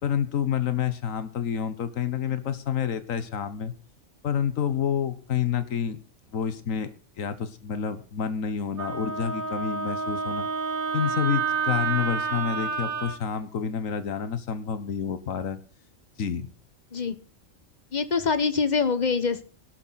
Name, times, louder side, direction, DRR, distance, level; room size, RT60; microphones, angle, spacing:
voice 1, 0.0-3.7 4.2-6.0 6.3-6.9 7.2-10.5 10.9-15.6 16.2-16.5, left 8 dB, 90° left, 12 dB, 1.5 m, -28 dB
Wind instrument woodwind instrument, 8.8-13.2, right 5 dB, 45° right, 1.5 m, -29 dB
voice 2, 17.9-19.4, left 5 dB, 35° left, 12 dB, 1.3 m, -24 dB
17.0 x 12.0 x 4.1 m, 0.35 s
omnidirectional pair, 1.3 m